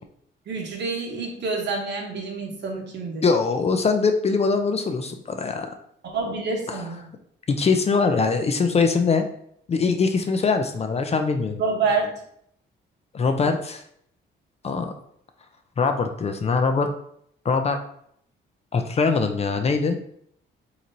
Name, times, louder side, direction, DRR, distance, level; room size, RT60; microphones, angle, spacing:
voice 1, 0.5-3.2 6.0-7.1 11.6-12.1, right 4 dB, 60° right, 1 dB, 1.0 m, -27 dB
voice 2, 3.2-5.7 6.7-6.8 7.5-9.3 9.7-11.6 13.1-13.8 14.6-14.9 15.8-16.9 17.4-17.8 18.7-20.0, left 4 dB, 30° left, 6 dB, 0.4 m, -22 dB
3.8 x 3.0 x 2.6 m, 0.67 s
cardioid pair, 90°, 20 cm